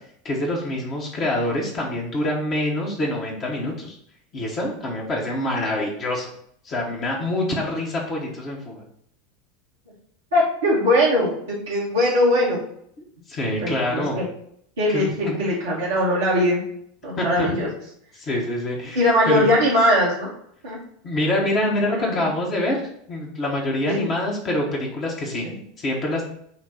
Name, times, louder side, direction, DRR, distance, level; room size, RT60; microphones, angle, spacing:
voice 1, 0.2-4.0 4.3-6.3 6.6-8.8 13.3-14.2 14.9-15.4 17.2-17.5 18.1-19.5 21.0-25.5 25.8-26.3, left 1 dB, 35° left, -3 dB, 1.4 m, -25 dB
voice 2, 10.3-12.6 13.6-14.3 14.8-16.6 17.0-17.7 19.0-20.3 20.6-20.8 21.9-22.3 23.9-24.0 25.4-25.6, left 1 dB, 70° right, -6 dB, 1.6 m, -21 dB
6.6 x 2.6 x 5.6 m, 0.68 s
figure-of-eight pair, 80°, 0 cm